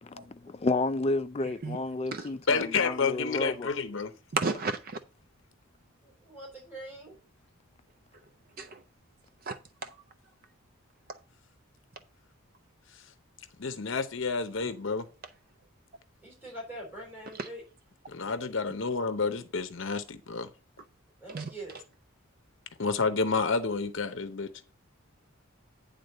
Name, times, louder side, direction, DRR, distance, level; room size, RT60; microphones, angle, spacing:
voice 1, 0.0-3.7, left 2 dB, 25° left, 0.4 m, -31 dB
voice 2, 2.5-4.1 13.6-15.1 18.1-20.5 22.8-24.5, left 4 dB, 55° left, 0.7 m, -29 dB
voice 3, 4.3-5.0 8.6-8.8 9.5-9.9 17.4-17.5 21.3-21.5, right 4 dB, 40° right, 0.5 m, -32 dB
voice 4, 6.0-7.1 16.2-17.6 21.2-21.7, right 1 dB, 10° right, 3.4 m, -43 dB
9.6 x 3.8 x 6.4 m
head